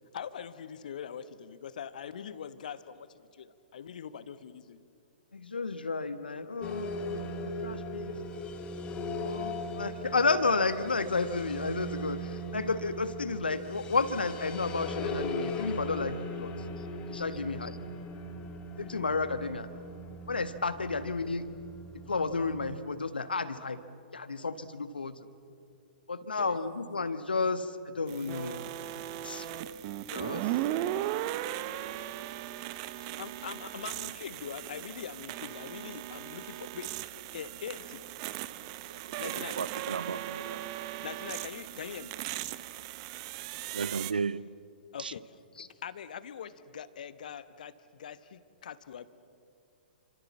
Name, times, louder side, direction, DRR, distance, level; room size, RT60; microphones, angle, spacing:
voice 1, 0.1-4.8 16.8-16.9 17.3-17.4 26.2-26.6 32.9-37.0 37.3-38.0 39.2-39.6 41.0-42.1 44.9-49.1, left 8 dB, 55° left, 14 dB, 1.2 m, -43 dB
voice 2, 5.3-8.2 9.2-16.5 17.1-17.8 18.8-19.7 20.3-21.5 22.1-23.8 24.1-25.2 26.1-28.7 29.2-29.5 30.1-30.5 45.5-45.7, left 4 dB, 70° left, 12 dB, 1.4 m, -32 dB
sound 1, 6.6-22.8, left 1 dB, 20° left, 2.0 m, -39 dB
sound 2, 28.1-44.1, right 13 dB, 35° right, 0.9 m, -37 dB
voice 3, 38.9-40.6 43.7-44.5 45.0-45.1, right 5 dB, 70° right, 20 dB, 0.7 m, -35 dB
29.5 x 26.0 x 7.3 m, 2.4 s
figure-of-eight pair, 115°, 5 cm